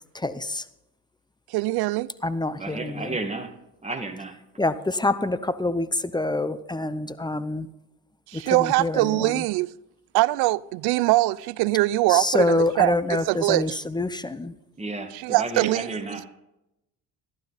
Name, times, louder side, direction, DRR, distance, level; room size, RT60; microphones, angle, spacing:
voice 1, 0.1-0.6 2.2-3.1 4.6-7.7 8.3-9.4 12.1-14.5, left 2 dB, 10° left, 0.7 m, -26 dB
voice 2, 1.5-2.1 8.3-9.7 10.1-13.8 15.1-16.0, right 19 dB, 80° right, 0.5 m, -23 dB
voice 3, 2.6-3.5 3.8-4.4 14.8-16.3, right 3 dB, 15° right, 1.9 m, -32 dB
15.0 x 12.0 x 4.1 m
supercardioid pair, 85°, 38 cm